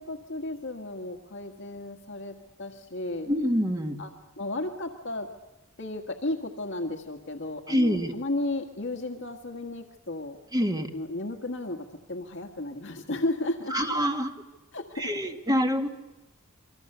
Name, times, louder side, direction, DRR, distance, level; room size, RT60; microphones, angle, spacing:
voice 1, 0.0-3.3 4.0-4.1 4.4-5.3 5.8-10.4 10.9-13.8 14.7-15.1, left 2 dB, 60° left, 4 dB, 1.7 m, -34 dB
voice 2, 3.3-4.0 7.7-8.1 10.5-10.9 13.7-14.3 15.0-15.9, equal, 20° right, 4 dB, 2.1 m, -26 dB
28.0 x 24.0 x 6.8 m, 1.1 s
head